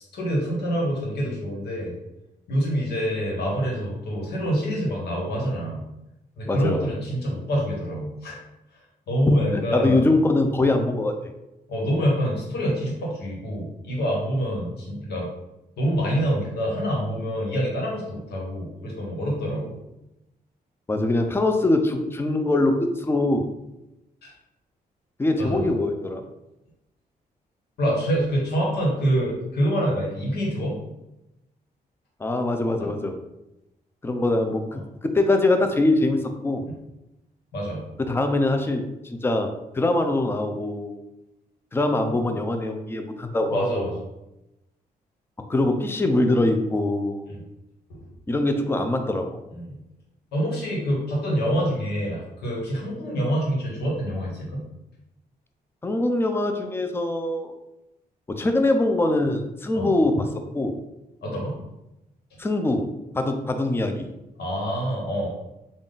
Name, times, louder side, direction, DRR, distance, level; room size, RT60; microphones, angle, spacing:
voice 1, 0.1-1.9 2.5-5.8 6.4-8.4 9.1-10.1 11.7-15.3 15.8-19.7 24.2-24.3 25.4-25.8 27.8-30.8 32.8-32.9 36.7-36.8 37.5-37.8 43.5-44.0 47.3-47.4 47.9-48.0 49.5-49.8 50.3-54.6 59.7-59.9 61.2-61.6 64.4-65.3, equal, 85° left, -3 dB, 1.3 m, -26 dB
voice 2, 6.5-6.9 9.5-11.1 20.9-23.4 25.2-26.2 32.2-33.2 34.0-36.6 38.1-40.9 41.7-44.0 45.5-47.2 48.3-49.3 55.8-57.5 58.3-60.3 60.5-60.8 62.4-62.9 63.1-64.1, left 2 dB, 15° left, 6 dB, 0.4 m, -23 dB
3.5 x 2.4 x 3.9 m, 0.93 s
cardioid pair, 90°, 16 cm